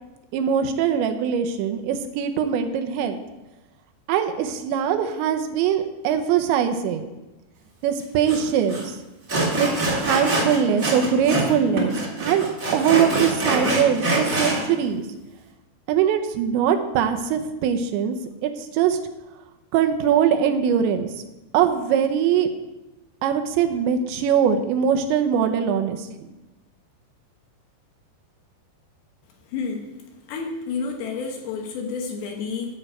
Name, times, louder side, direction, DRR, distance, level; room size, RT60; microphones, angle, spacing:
voice 1, 0.3-3.2 4.1-7.0 7.8-8.8 9.6-11.9 12.2-12.5 12.7-15.0 15.9-18.2 18.4-19.0 19.7-21.1 21.5-22.5 23.2-26.3, right 8 dB, 90° right, 7 dB, 3.1 m, -22 dB
Sawing, 8.3-8.4 8.7-8.8 9.3-11.5 11.8-14.6, right 2 dB, 60° right, 0.8 m, -24 dB
voice 2, 29.5-29.9 30.3-32.7, left 5 dB, 70° left, 2 dB, 2.6 m, -30 dB
11.0 x 4.9 x 7.8 m, 1.0 s
omnidirectional pair, 5.1 m